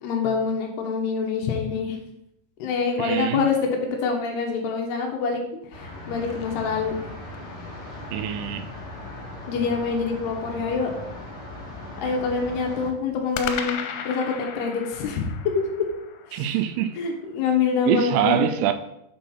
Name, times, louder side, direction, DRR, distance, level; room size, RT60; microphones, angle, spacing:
voice 1, 0.0-2.0 2.6-5.4 5.7-6.9 9.5-10.9 12.0-15.3 15.5-15.7 16.3-16.6 17.0-18.5, left 5 dB, 70° left, 2.6 m, -26 dB
voice 2, 3.0-3.4 8.1-8.7 16.3-17.0 17.9-18.7, right 11 dB, 85° right, 3.1 m, -24 dB
sound 1, 5.6-7.5 13.3-17.6, left 8 dB, 90° left, 3.3 m, -37 dB
sound 2, 5.7-12.9, left 2 dB, 55° left, 1.5 m, -38 dB
8.3 x 4.4 x 5.7 m
omnidirectional pair, 5.9 m